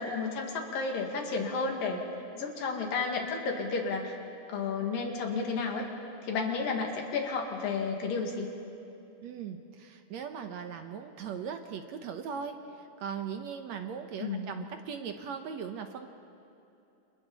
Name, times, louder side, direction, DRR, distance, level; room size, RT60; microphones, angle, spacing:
voice 1, 0.0-2.0 2.4-4.1 4.5-5.9 6.2-8.5 14.2-14.5, left 4 dB, 80° left, 1 dB, 3.8 m, -32 dB
voice 2, 9.2-16.1, right 7 dB, 65° right, 6 dB, 1.9 m, -39 dB
29.5 x 28.5 x 4.2 m, 2.8 s
omnidirectional pair, 3.9 m